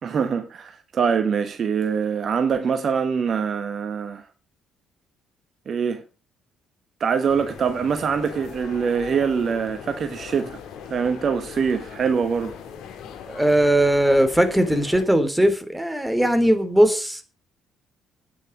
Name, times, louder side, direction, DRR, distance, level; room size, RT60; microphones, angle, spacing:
voice 1, 0.0-4.2 5.7-6.0 7.0-10.6 10.9-12.5, right 6 dB, 50° right, 1.2 m, -24 dB
sound 1, 7.3-15.1, left 7 dB, 65° left, 1.9 m, -40 dB
voice 2, 13.3-17.2, right 1 dB, 5° right, 3.1 m, -19 dB
9.7 x 9.3 x 6.4 m
hypercardioid pair, 50°, 0 cm